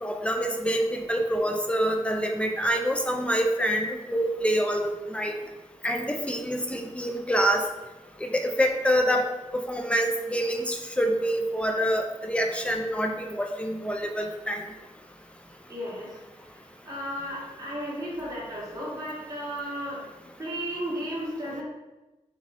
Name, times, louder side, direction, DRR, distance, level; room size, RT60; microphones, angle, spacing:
voice 1, 0.0-5.3 5.8-7.6 8.2-9.3 9.5-14.6, equal, 10° left, 3 dB, 0.4 m, -26 dB
voice 2, 15.7-16.1 16.8-20.0 20.4-21.6, equal, 30° right, -7 dB, 1.4 m, -34 dB
4.0 x 3.6 x 2.6 m, 1.1 s
wide cardioid pair, 140°, 13 cm